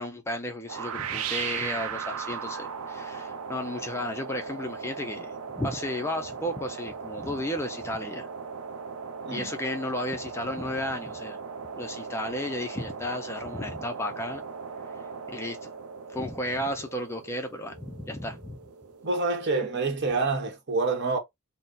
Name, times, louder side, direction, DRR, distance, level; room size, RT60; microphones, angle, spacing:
voice 1, 0.0-8.3 9.3-11.4 11.8-14.4 15.3-15.7 16.1-18.6, left 1 dB, 10° left, 0.4 m, -33 dB
sound 1, 0.7-19.5, right 6 dB, 90° right, 0.6 m, -38 dB
voice 2, 19.0-21.2, right 3 dB, 50° right, 1.1 m, -27 dB
3.9 x 2.1 x 3.7 m
head